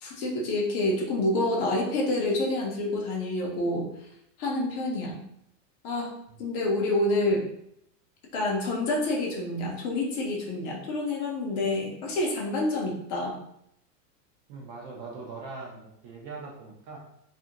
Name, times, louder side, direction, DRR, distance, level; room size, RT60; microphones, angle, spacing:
voice 1, 0.0-3.9 4.4-5.2 5.8-6.1 6.4-7.5 8.3-13.4, left 2 dB, 40° left, -1 dB, 0.6 m, -28 dB
voice 2, 14.5-17.0, right 4 dB, 35° right, -2 dB, 0.5 m, -41 dB
2.5 x 2.1 x 2.7 m, 0.75 s
hypercardioid pair, 125°, 49 cm